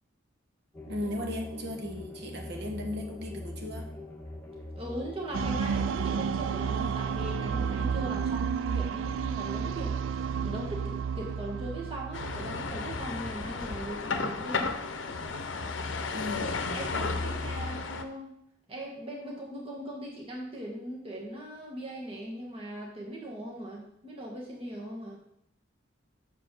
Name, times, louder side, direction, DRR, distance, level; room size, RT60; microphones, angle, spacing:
sound 1, 0.7-5.9, left 1 dB, 10° left, 1.3 m, -42 dB
voice 1, 0.9-3.9 16.1-16.6, left 1 dB, 55° right, 2 dB, 1.2 m, -36 dB
voice 2, 4.7-14.7 16.7-18.4 18.7-25.2, right 1 dB, 30° right, -3 dB, 1.6 m, -39 dB
sound 2, 5.3-13.5, right 6 dB, 75° right, 0.3 m, -31 dB
sound 3, 12.1-18.0, left 4 dB, 70° left, 0.7 m, -33 dB
6.7 x 5.0 x 6.3 m, 0.72 s
head